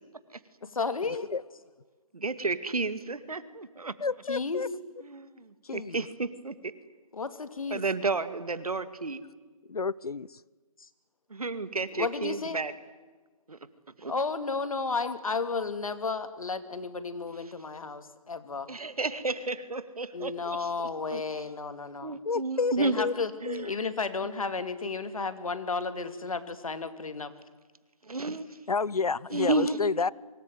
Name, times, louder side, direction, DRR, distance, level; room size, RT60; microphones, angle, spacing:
voice 1, 0.6-1.3 4.3-4.7 7.1-7.8 10.8-10.9 11.9-12.6 14.1-18.7 20.1-22.2 22.8-23.3 23.6-27.3, left 4 dB, 70° left, 2.5 m, -33 dB
voice 2, 2.1-3.9 5.1-6.7 7.7-9.2 11.3-12.7 13.5-13.6 14.0-14.1 18.7-20.7 21.1-21.2 22.0-23.0 23.4-23.7 28.0-28.5 29.3-29.8, right 3 dB, 80° right, 2.3 m, -31 dB
voice 3, 4.0-4.7 5.6-6.0 9.7-10.4 15.0-15.1 22.2-23.1 23.5-23.7 28.7-30.1, left 4 dB, 90° left, 0.8 m, -30 dB
24.0 x 22.5 x 9.3 m
figure-of-eight pair, 160°, 19 cm